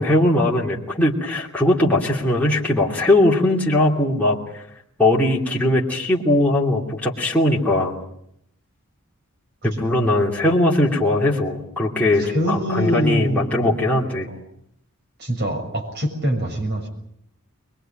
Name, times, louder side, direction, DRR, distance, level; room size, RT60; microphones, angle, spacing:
voice 1, 0.0-4.4 5.0-8.0 9.6-14.3, left 1 dB, 5° left, -4 dB, 2.8 m, -19 dB
voice 2, 12.2-13.7 14.3-14.4 15.2-16.9, equal, 45° right, 4 dB, 6.7 m, -24 dB
23.5 x 22.0 x 8.9 m, 0.73 s
head